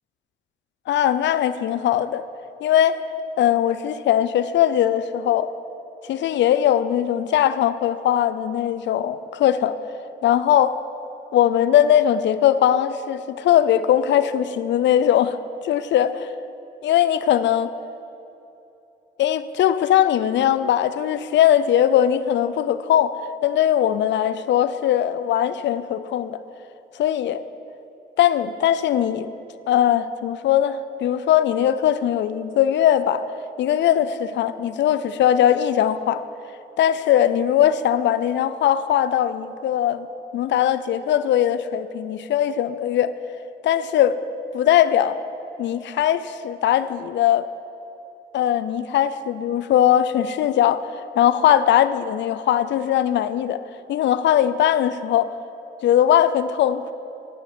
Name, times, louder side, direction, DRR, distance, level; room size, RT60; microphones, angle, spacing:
voice 1, 0.9-2.2 2.6-3.0 3.4-5.5 6.0-9.7 10.2-10.8 11.3-15.4 15.6-16.3 16.8-17.7 19.2-23.1 23.4-26.4 26.9-27.4 28.2-29.3 29.7-33.2 33.6-36.2 36.8-40.1 40.3-43.1 43.6-44.2 44.5-45.2 45.6-47.5 48.3-50.8 51.2-53.6 53.9-55.3 55.8-56.9, left 10 dB, 65° left, 13 dB, 0.4 m, -20 dB
9.2 x 9.1 x 4.3 m, 3.0 s
cardioid pair, 90°, 20 cm